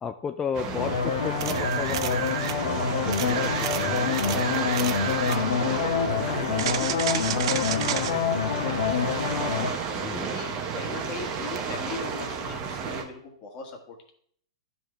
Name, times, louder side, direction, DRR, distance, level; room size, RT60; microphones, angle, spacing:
voice 1, 0.0-2.2 3.1-4.1 10.0-10.3, left 6 dB, 20° left, 7 dB, 0.4 m, -33 dB
sound 1, 0.5-13.0, right 6 dB, 35° right, 1.2 m, -32 dB
sound 2, 0.8-9.7, left 6 dB, 75° left, 1.2 m, -27 dB
sound 3, 1.4-2.6 3.1-5.4 6.6-8.1 11.6-11.7, right 11 dB, 60° right, 0.5 m, -31 dB
voice 2, 4.0-4.5 5.3-9.8 10.3-14.1, left 5 dB, 35° left, 2 dB, 1.6 m, -40 dB
12.0 x 4.2 x 3.3 m, 0.62 s
hypercardioid pair, 120°, 3 cm